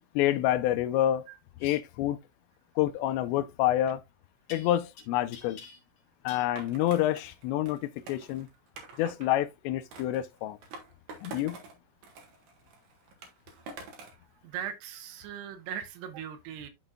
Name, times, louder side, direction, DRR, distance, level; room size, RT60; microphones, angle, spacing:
voice 1, 0.2-1.3 1.6-2.2 2.8-4.0 4.5-5.6 6.2-8.5 9.0-10.6 11.2-11.6, left 13 dB, 85° left, 2.6 m, -28 dB
sound 1, 1.6-1.8 4.5-5.0 5.3-6.0 6.3-6.5, left 5 dB, 50° left, 2.2 m, -48 dB
Skateboard, 6.6-9.3 9.9-11.8 12.0-14.2, right 3 dB, 60° right, 2.5 m, -47 dB
voice 2, 14.4-16.7, right 9 dB, 75° right, 2.6 m, -39 dB
11.5 x 4.0 x 2.3 m
omnidirectional pair, 5.5 m